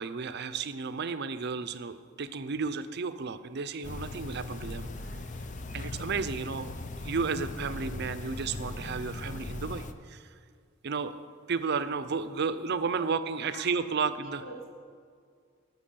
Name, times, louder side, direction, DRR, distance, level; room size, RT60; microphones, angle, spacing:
voice 1, 0.0-4.9 5.7-6.7 7.0-10.3 10.8-14.4, right 5 dB, 55° right, 12 dB, 0.5 m, -33 dB
sound 1, 3.8-9.9, left 2 dB, 40° left, 0.5 m, -39 dB
voice 2, 13.5-14.7, right 1 dB, 70° left, -2 dB, 2.7 m, -46 dB
12.5 x 6.2 x 6.8 m, 2.1 s
head